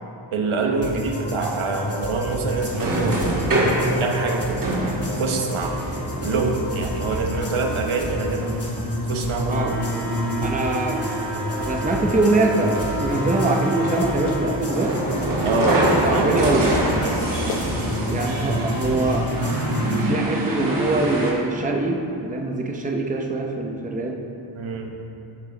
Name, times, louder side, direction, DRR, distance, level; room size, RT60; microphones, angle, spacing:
voice 1, 0.3-3.4 4.0-4.6 5.2-5.8 6.2-8.5 9.1-9.8 15.4-15.8 16.1-16.4 17.0-17.5 24.5-24.9, right 3 dB, 80° right, 2 dB, 1.1 m, -25 dB
sound 1, 0.8-20.0, equal, 30° left, 1.3 m, -29 dB
sound 2, 2.7-21.3, right 1 dB, 40° right, 1.9 m, -27 dB
voice 2, 10.4-11.0 11.7-15.0 16.0-16.7 18.0-19.3 19.9-24.2, right 2 dB, 15° right, 1 dB, 0.7 m, -23 dB
Clapping, 14.3-14.5 15.6-15.8 17.1-17.2 17.5-17.7 18.8-19.0, left 7 dB, 80° left, 0.6 m, -35 dB
14.0 x 5.5 x 3.9 m, 2.8 s
wide cardioid pair, 130°, 49 cm